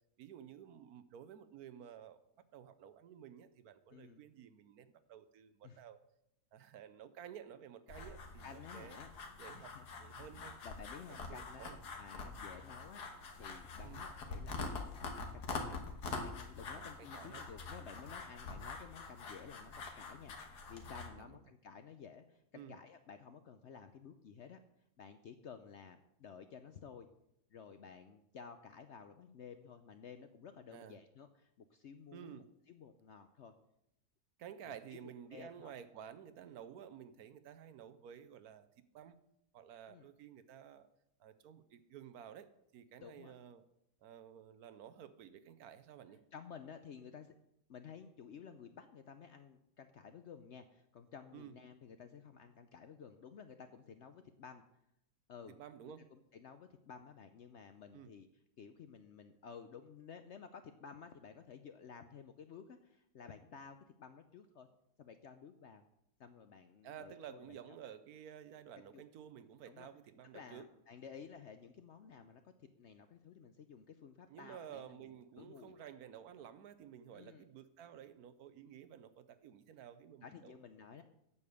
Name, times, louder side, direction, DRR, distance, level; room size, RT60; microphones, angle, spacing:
voice 1, 0.2-2.2 2.5-6.0 6.5-9.0 9.4-10.5 11.1-11.8 13.8-14.0 16.7-17.4 21.2-21.4 22.5-22.8 30.7-31.0 32.1-32.5 34.4-39.2 39.5-40.9 41.2-42.5 42.7-43.6 44.0-46.2 51.3-51.5 55.5-56.1 57.9-58.1 66.8-70.6 74.3-80.6, right 9 dB, 70° right, 12 dB, 1.1 m, -53 dB
voice 2, 3.9-4.2 5.6-5.8 8.4-9.1 9.5-9.9 10.3-13.0 13.4-15.8 16.2-24.6 25.0-27.1 27.5-33.5 34.6-35.0 35.3-35.7 39.9-40.1 43.0-43.3 46.3-47.3 47.7-54.6 55.3-55.5 56.1-58.3 58.6-64.7 65.0-65.8 66.2-67.8 68.9-69.0 69.6-69.9 70.3-75.1 75.4-75.7 77.1-77.4 80.2-81.0, left 6 dB, 65° left, 8 dB, 0.7 m, -54 dB
sound 1, 7.9-21.1, left 4 dB, 90° left, 1.9 m, -45 dB
8.4 x 6.9 x 6.7 m, 0.80 s
omnidirectional pair, 1.7 m